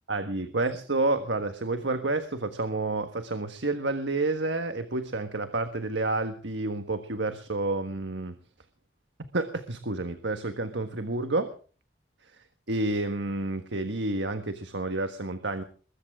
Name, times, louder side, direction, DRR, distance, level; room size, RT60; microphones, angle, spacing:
voice 1, 0.1-8.4 9.3-11.5 12.7-15.6, right 2 dB, 90° right, 8 dB, 1.5 m, -29 dB
21.5 x 14.5 x 3.7 m, 0.39 s
head